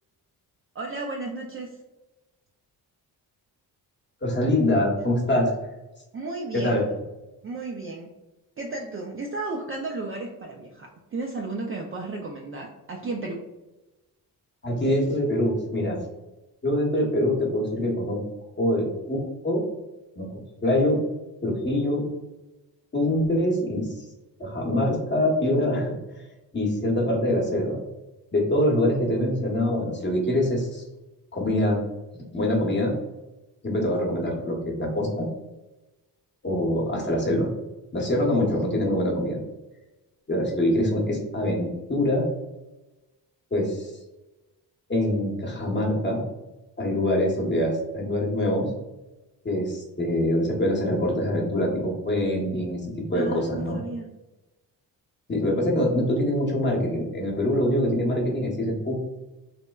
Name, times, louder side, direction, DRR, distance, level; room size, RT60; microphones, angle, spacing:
voice 1, 0.8-1.7 6.1-6.8 7.4-8.1 8.6-13.4 53.1-54.1, right 3 dB, 35° right, 0 dB, 0.4 m, -33 dB
voice 2, 4.2-5.5 6.5-6.9 14.6-16.0 16.6-18.2 18.6-19.6 20.2-21.0 21.4-22.1 22.9-24.0 24.4-26.0 26.5-27.8 28.3-30.8 31.3-31.8 32.3-32.9 33.6-35.3 36.4-37.5 37.9-39.4 40.3-42.3 43.5-43.9 44.9-46.2 46.8-48.7 49.4-52.8 53.1-53.8 55.3-59.0, left 1 dB, 25° left, -1 dB, 0.9 m, -24 dB
3.1 x 2.1 x 2.2 m, 1.0 s
cardioid pair, 65°, 41 cm